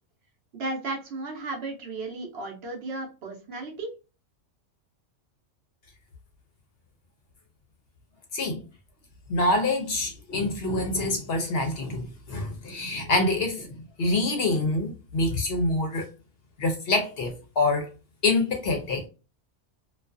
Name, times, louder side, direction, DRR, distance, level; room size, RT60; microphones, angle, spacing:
voice 1, 0.5-3.9, right 2 dB, 60° right, 0.8 m, -34 dB
voice 2, 9.3-16.1 16.6-17.9 18.2-19.1, left 2 dB, 60° left, 0.7 m, -26 dB
2.4 x 2.3 x 2.4 m
omnidirectional pair, 1.3 m